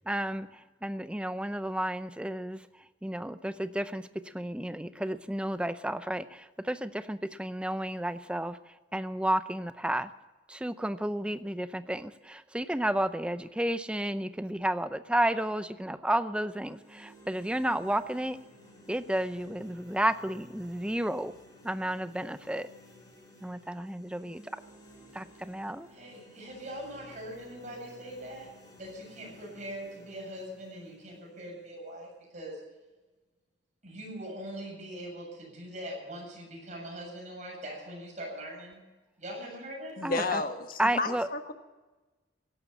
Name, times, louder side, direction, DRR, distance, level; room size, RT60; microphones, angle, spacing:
voice 1, 0.1-2.7 3.0-8.6 8.9-10.1 10.5-18.4 18.9-21.3 21.6-22.7 23.4-24.6 25.1-25.9 40.0-40.4 40.8-41.3, right 1 dB, 5° right, 12 dB, 0.6 m, -32 dB
sound 1, 16.5-32.5, equal, 20° left, 4.3 m, -55 dB
voice 2, 25.9-28.5 28.8-32.6 33.8-38.8 39.2-39.9, equal, 40° right, -1 dB, 7.5 m, -42 dB
voice 3, 40.0-41.5, left 3 dB, 50° left, 7 dB, 1.4 m, -32 dB
16.5 x 12.0 x 7.2 m, 1.2 s
head